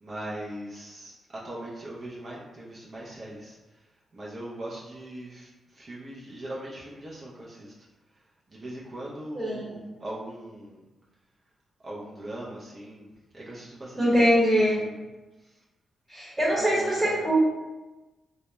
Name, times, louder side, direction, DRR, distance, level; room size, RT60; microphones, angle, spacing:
voice 1, 0.0-3.6 4.1-7.7 8.5-10.8 11.8-13.1 13.3-14.0 14.5-15.0 15.4-15.5 16.5-17.4, right 1 dB, 50° right, -6 dB, 0.5 m, -40 dB
voice 2, 9.3-9.8 14.0-14.8 16.1-17.4, equal, 15° right, -8 dB, 1.0 m, -23 dB
2.1 x 2.0 x 2.9 m, 1.1 s
cardioid pair, 75°, 0 cm